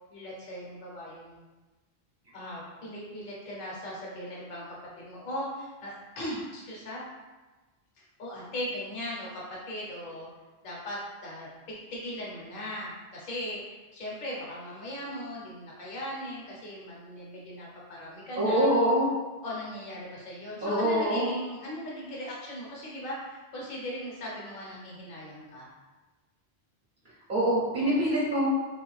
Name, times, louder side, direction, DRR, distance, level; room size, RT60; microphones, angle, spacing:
voice 1, 0.1-1.4 2.3-7.0 8.0-10.3 10.6-18.7 19.4-25.7, left 1 dB, 55° left, -4 dB, 1.0 m, -38 dB
voice 2, 18.4-19.1 20.6-21.3 27.3-28.5, equal, 50° right, -10 dB, 0.9 m, -24 dB
3.2 x 2.4 x 3.1 m, 1.2 s
omnidirectional pair, 1.1 m